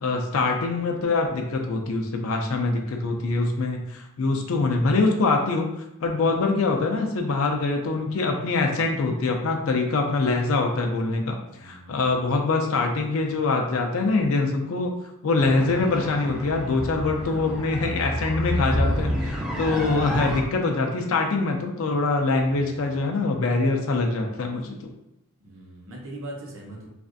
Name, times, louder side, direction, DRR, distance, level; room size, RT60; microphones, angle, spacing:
voice 1, 0.0-5.7 6.0-24.8, left 3 dB, 65° left, 2 dB, 0.4 m, -24 dB
voice 2, 11.4-12.1 17.2-17.6 22.4-23.0 25.4-26.9, right 1 dB, 60° right, -1 dB, 0.8 m, -43 dB
sound 1, 15.4-20.4, equal, 5° right, 0.4 m, -29 dB
3.2 x 2.4 x 2.6 m, 0.87 s
head